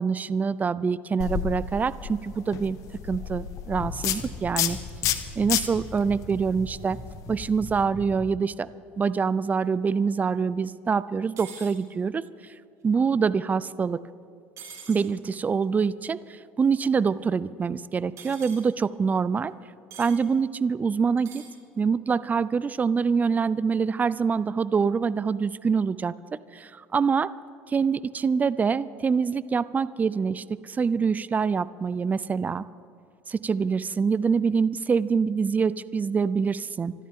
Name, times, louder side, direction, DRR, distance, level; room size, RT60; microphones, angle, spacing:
voice 1, 0.0-2.8 3.1-4.8 5.4-7.0 7.3-8.7 9.0-12.2 12.8-14.0 14.9-19.5 20.0-21.4 21.8-27.3 27.7-32.6 33.3-36.9, right 5 dB, 25° right, 17 dB, 0.5 m, -25 dB
sound 1, 1.2-7.8, left 10 dB, 60° left, 1.1 m, -32 dB
sound 2, 3.9-8.4, left 1 dB, 5° left, 2.1 m, -41 dB
sound 3, 11.4-11.7 14.6-15.0 18.2-18.6 19.9-20.2 21.2-21.5, right 5 dB, 55° right, 4.0 m, -43 dB
26.0 x 12.5 x 3.8 m, 2.5 s
hypercardioid pair, 80°, 6 cm